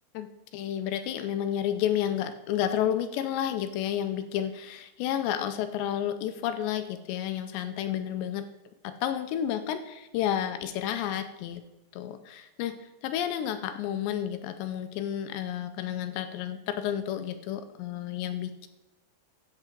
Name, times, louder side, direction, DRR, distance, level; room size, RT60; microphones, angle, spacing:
voice 1, 0.5-8.5 8.8-11.6 11.9-12.8 13.0-18.7, left 10 dB, 80° left, 9 dB, 2.7 m, -31 dB
13.5 x 8.8 x 4.6 m, 0.99 s
omnidirectional pair, 5.4 m